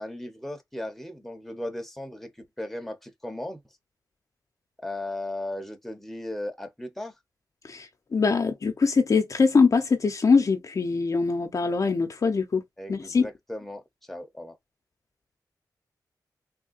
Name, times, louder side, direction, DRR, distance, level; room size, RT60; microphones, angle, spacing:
voice 1, 0.0-2.3 2.6-3.6 4.8-7.1 12.8-13.8 14.1-14.6, left 1 dB, 5° left, 0.8 m, -36 dB
voice 2, 7.6-12.6 12.9-13.3, left 4 dB, 50° left, 0.6 m, -23 dB
3.5 x 2.2 x 2.5 m
wide cardioid pair, 95°, 7 cm